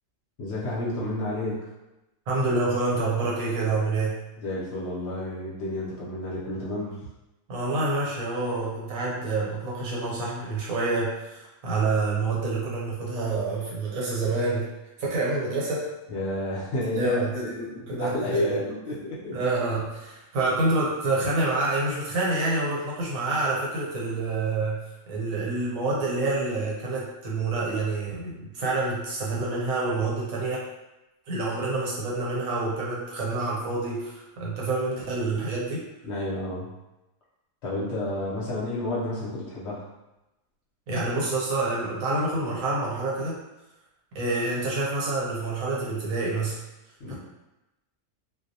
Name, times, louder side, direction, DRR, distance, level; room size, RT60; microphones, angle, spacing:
voice 1, 0.4-1.7 4.4-7.0 16.1-19.4 36.0-36.7 37.6-39.9 47.0-47.2, left 1 dB, 60° left, -6 dB, 0.8 m, -30 dB
voice 2, 2.3-4.2 7.5-14.7 15.0-15.8 16.9-18.6 19.3-24.8 25.1-30.6 31.3-35.8 40.9-43.4 44.1-46.6 47.1-47.2, right 3 dB, 80° right, -5 dB, 1.1 m, -27 dB
2.3 x 2.0 x 2.7 m, 0.98 s
omnidirectional pair, 1.4 m